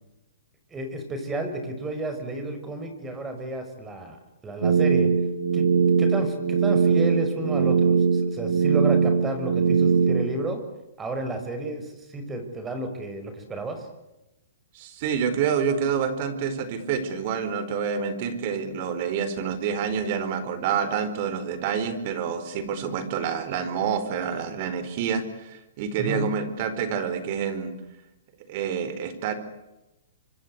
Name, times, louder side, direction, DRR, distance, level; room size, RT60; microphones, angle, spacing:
voice 1, 0.7-4.2 4.4-5.1 5.5-5.7 6.0-10.6 11.0-13.9 25.9-26.3, right 2 dB, 15° right, 7 dB, 6.0 m, -32 dB
sound 1, 4.6-10.3, right 5 dB, 85° right, 2.5 m, -21 dB
voice 2, 14.7-27.7 28.5-29.3, right 7 dB, 45° right, 12 dB, 4.6 m, -28 dB
26.0 x 25.5 x 8.2 m, 0.96 s
hypercardioid pair, 140°, 0 cm